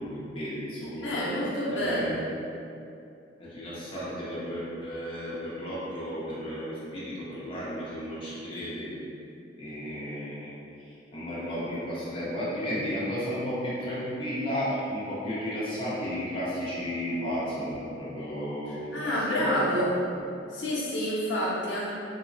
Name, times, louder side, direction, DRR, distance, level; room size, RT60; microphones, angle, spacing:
voice 1, 0.0-1.1 1.7-2.1 3.4-9.0 9.6-19.8, equal, 30° left, -9 dB, 0.6 m, -33 dB
voice 2, 1.0-2.2 18.9-19.9 20.5-21.9, equal, 85° left, -7 dB, 0.6 m, -28 dB
2.9 x 2.0 x 2.5 m, 2.6 s
head